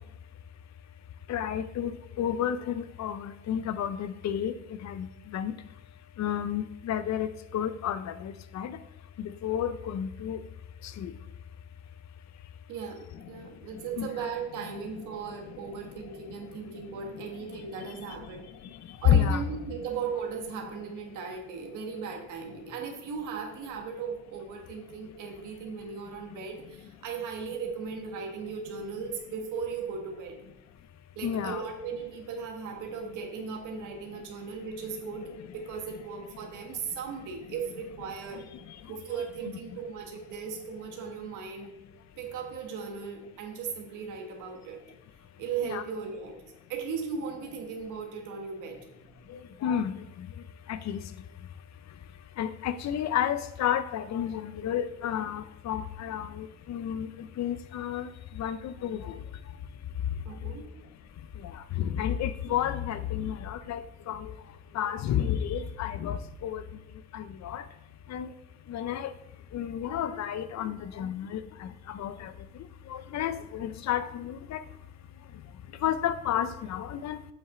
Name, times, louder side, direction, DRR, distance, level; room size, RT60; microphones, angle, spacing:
voice 1, 1.3-4.5 4.8-5.1 5.3-5.5 6.2-8.8 9.2-10.4 11.0-11.1 14.0-14.1 19.0-19.4 31.2-31.6 45.6-45.8 49.6-49.9 50.7-51.0 52.4-57.1 57.4-58.1 58.4-59.1 61.8-63.8 64.1-64.3 64.7-66.6 67.1-67.6 68.1-68.3 68.7-69.1 69.5-71.7 72.0-72.3 72.9-74.6 75.8-77.2, left 9 dB, 65° left, 13 dB, 0.6 m, -30 dB
voice 2, 12.7-18.5 19.0-30.4 31.1-38.4 38.9-41.7 42.2-44.8 45.4-46.4 46.7-48.9 60.2-60.7, right 5 dB, 90° right, 2 dB, 1.5 m, -37 dB
7.7 x 5.6 x 3.8 m, 0.91 s
cardioid pair, 90°, 30 cm